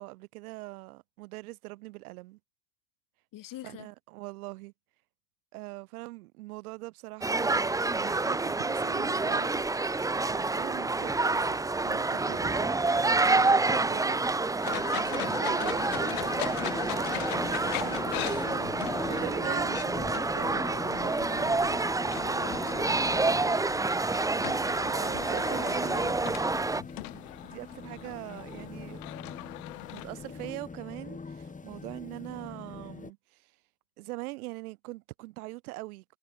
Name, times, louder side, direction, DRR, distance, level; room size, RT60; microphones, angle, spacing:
voice 1, 0.0-2.4 3.6-4.7 5.5-9.6 10.3-11.6 11.8-12.7 13.2-14.2 15.0-21.8 24.8-26.1 27.1-29.0 29.9-33.5 34.0-36.2, right 21 dB, 75° right, 2.4 m, -42 dB
voice 2, 3.3-3.9 15.2-15.4 22.4-23.4 24.4-24.6 25.1-26.3, left 14 dB, 45° left, 4.5 m, -45 dB
sound 1, 7.2-26.8, right 3 dB, 10° right, 0.9 m, -28 dB
sound 2, 14.6-30.5, left 22 dB, 75° left, 1.3 m, -41 dB
sound 3, 15.7-33.1, left 4 dB, 15° left, 6.9 m, -42 dB
supercardioid pair, 105°, 44 cm